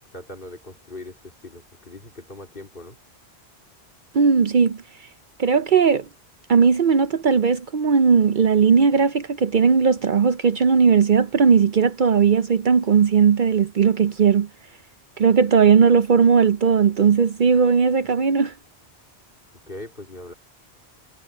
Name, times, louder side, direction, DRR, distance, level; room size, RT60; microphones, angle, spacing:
voice 1, 0.0-3.0 19.7-20.3, left 2 dB, 55° left, 3.7 m, -40 dB
voice 2, 4.1-4.8 5.4-6.1 6.5-14.5 15.2-18.5, right 6 dB, 55° right, 0.7 m, -17 dB
omnidirectional pair, 1.1 m